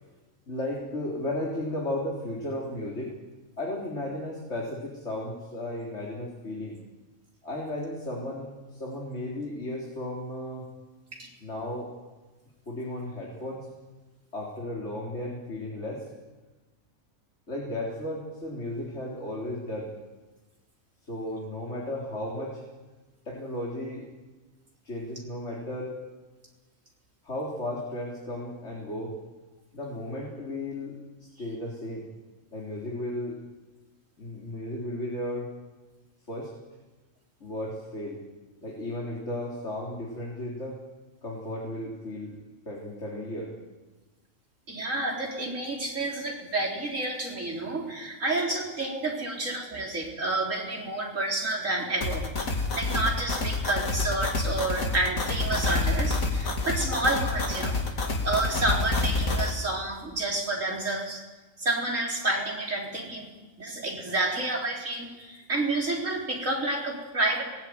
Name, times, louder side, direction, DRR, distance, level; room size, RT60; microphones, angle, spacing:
voice 1, 0.5-3.1 3.6-6.8 7.4-10.6 11.4-11.9 12.7-13.7 14.3-16.1 17.5-19.9 21.0-22.6 23.3-24.1 24.8-26.0 27.2-29.1 29.7-30.9 31.4-32.1 32.5-33.4 34.2-35.5 36.3-36.5 37.4-38.2 38.6-40.8 41.2-42.4 42.6-43.5, left 1 dB, 55° left, -3 dB, 4.2 m, -34 dB
voice 2, 44.7-57.8 58.2-61.2 61.6-63.3 63.6-67.4, right 2 dB, 70° right, -1 dB, 4.8 m, -29 dB
sound 1, 52.0-59.5, left 3 dB, 85° left, 2.8 m, -28 dB
24.0 x 19.5 x 9.5 m, 1.2 s
omnidirectional pair, 1.4 m